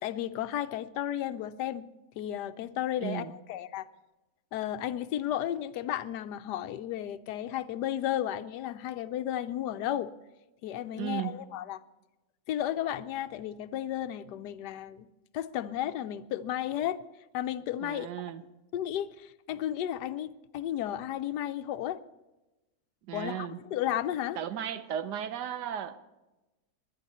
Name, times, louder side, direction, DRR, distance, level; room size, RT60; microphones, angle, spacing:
voice 1, 0.0-1.9 2.2-3.9 4.5-10.1 10.6-11.8 12.5-15.1 15.3-17.0 17.3-18.1 18.7-22.0 23.1-24.4, left 11 dB, 85° left, 13 dB, 1.2 m, -33 dB
voice 2, 3.0-3.3 10.9-11.3 17.8-18.4 23.1-23.6 24.4-26.0, right 10 dB, 85° right, 12 dB, 1.4 m, -35 dB
21.0 x 10.5 x 4.2 m, 1.1 s
omnidirectional pair, 1.7 m